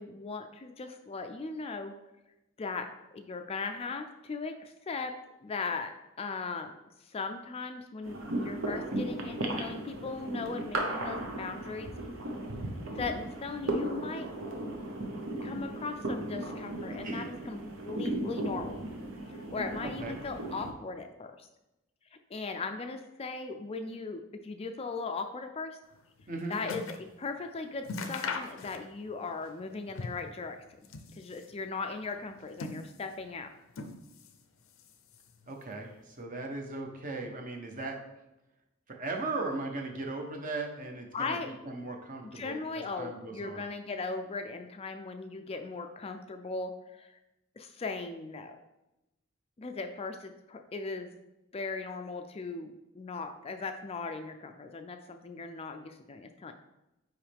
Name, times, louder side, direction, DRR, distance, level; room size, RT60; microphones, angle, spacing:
voice 1, 0.0-1.9 2.6-5.1 5.4-11.9 12.9-14.3 15.4-18.8 19.3-21.5 22.1-25.8 26.5-33.5 41.1-41.5 42.3-47.2 47.6-48.6 49.6-51.2 51.5-56.5, left 4 dB, 30° left, 6 dB, 0.4 m, -38 dB
sound 1, 8.0-20.7, right 1 dB, 70° right, 0.9 m, -36 dB
voice 2, 16.9-17.3 19.8-20.2 26.3-26.6 35.5-38.0 38.9-41.4 41.6-43.6, right 3 dB, 40° right, 2 dB, 0.9 m, -38 dB
sound 2, 25.9-27.1 27.4-27.5 27.8-29.1 29.4-30.4 30.7-31.6 32.2-33.2 33.7-34.4 34.7-35.5 36.2-36.3, left 4 dB, 75° left, 0.6 m, -40 dB
9.3 x 3.1 x 3.5 m, 0.93 s
head